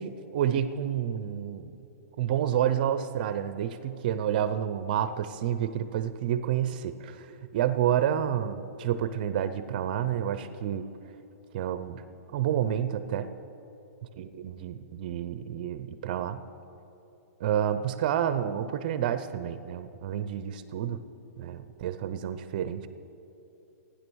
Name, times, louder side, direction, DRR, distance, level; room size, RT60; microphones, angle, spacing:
voice 1, 0.0-1.7 2.2-7.3 7.5-10.9 11.5-12.0 12.3-13.3 14.2-16.4 17.4-21.0 21.4-22.9, right 10 dB, 35° right, 12 dB, 0.5 m, -29 dB
15.5 x 9.9 x 6.2 m, 3.0 s
hypercardioid pair, 170°, 8 cm